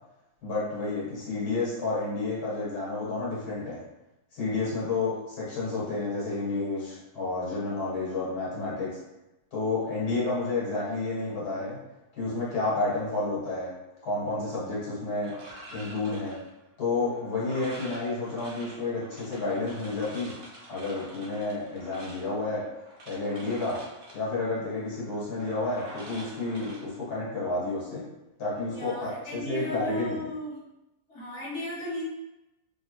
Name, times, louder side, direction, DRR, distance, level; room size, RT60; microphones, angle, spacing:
voice 1, 0.4-3.8 4.3-9.0 9.5-11.8 12.2-13.7 14.0-15.4 15.7-16.4 16.8-20.3 20.7-22.7 23.1-23.8 24.1-28.1 28.4-30.3, left 3 dB, 80° left, -8 dB, 1.7 m, -30 dB
sound 1, 15.2-27.5, right 1 dB, 60° right, 1.1 m, -47 dB
voice 2, 28.7-30.6 31.1-32.0, left 1 dB, 55° left, -8 dB, 1.5 m, -36 dB
3.1 x 2.9 x 3.0 m, 0.94 s
omnidirectional pair, 1.6 m